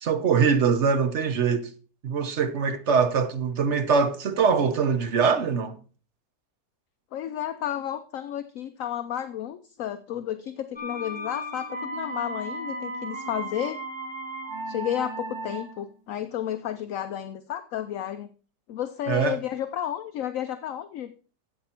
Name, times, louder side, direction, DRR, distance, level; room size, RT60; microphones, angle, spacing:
voice 1, 0.0-1.7 2.0-5.8 19.1-19.4, right 5 dB, 50° right, 0.9 m, -23 dB
voice 2, 7.1-13.8 14.7-18.3 18.7-21.1, left 10 dB, 65° left, 0.9 m, -32 dB
sound 1, 10.8-15.9, right 1 dB, 15° right, 2.2 m, -35 dB
12.5 x 8.0 x 4.4 m
omnidirectional pair, 1.9 m